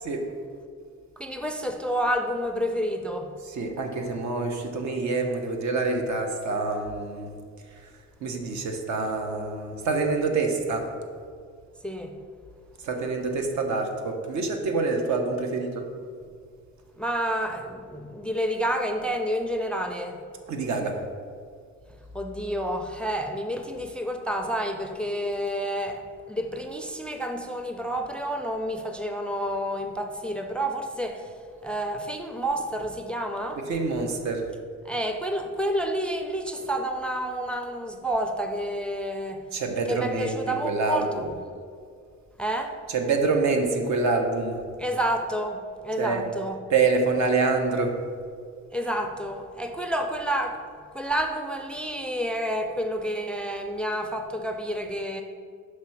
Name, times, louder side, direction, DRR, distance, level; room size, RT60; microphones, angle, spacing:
voice 1, 1.2-3.4 11.8-12.1 17.0-20.2 22.1-33.6 34.8-39.4 39.9-41.3 42.4-42.8 44.8-46.6 48.7-50.6 50.9-55.2, equal, 5° left, 5 dB, 0.4 m, -29 dB
voice 2, 3.5-7.3 8.2-10.8 12.8-15.8 20.5-20.9 33.7-34.4 39.5-41.2 42.9-44.6 46.0-46.3 46.7-47.9, right 3 dB, 65° right, 3 dB, 0.9 m, -26 dB
5.9 x 3.2 x 5.7 m, 2.1 s
cardioid pair, 90°, 30 cm